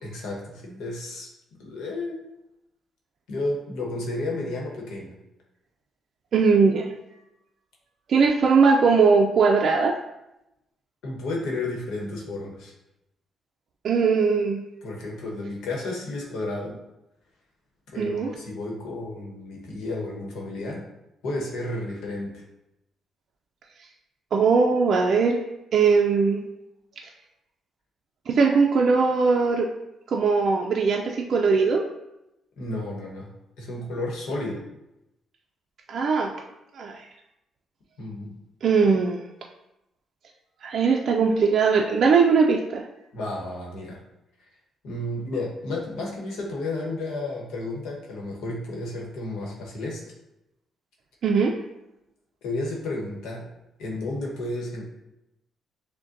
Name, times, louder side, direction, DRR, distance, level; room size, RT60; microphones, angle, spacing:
voice 1, 0.0-1.3 1.6-2.2 3.3-5.2 11.0-12.7 14.8-16.8 17.9-20.8 21.2-22.4 32.6-33.3 33.6-34.6 38.0-38.3 43.1-44.0 44.8-50.0 52.4-53.5 53.8-54.8, left 2 dB, 85° left, -2 dB, 1.0 m, -32 dB
voice 2, 6.3-6.9 8.1-10.0 13.8-14.6 18.0-18.3 24.3-25.4 25.7-26.4 28.3-29.7 30.1-31.8 35.9-36.3 36.7-37.1 38.6-39.2 40.6-42.8 51.2-51.5, right 5 dB, 60° right, 1 dB, 0.4 m, -20 dB
6.2 x 2.1 x 2.6 m, 0.89 s
cardioid pair, 90°, 0 cm